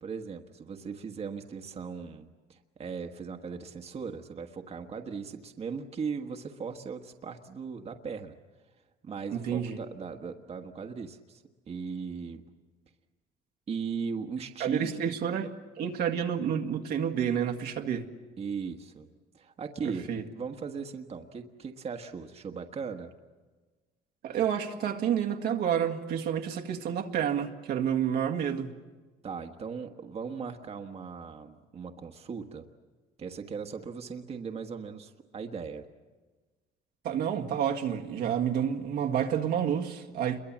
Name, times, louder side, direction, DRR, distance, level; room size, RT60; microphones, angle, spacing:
voice 1, 0.0-8.4 9.0-12.4 13.7-15.2 18.4-19.1 19.3-23.1 29.2-32.6 33.2-35.9, right 5 dB, 35° right, 1.4 m, -38 dB
voice 2, 9.3-9.8 14.6-15.5 15.8-18.1 19.8-20.2 24.2-28.7 37.0-40.4, right 8 dB, 75° right, 1.8 m, -29 dB
28.5 x 22.5 x 7.4 m
cardioid pair, 110°, 17 cm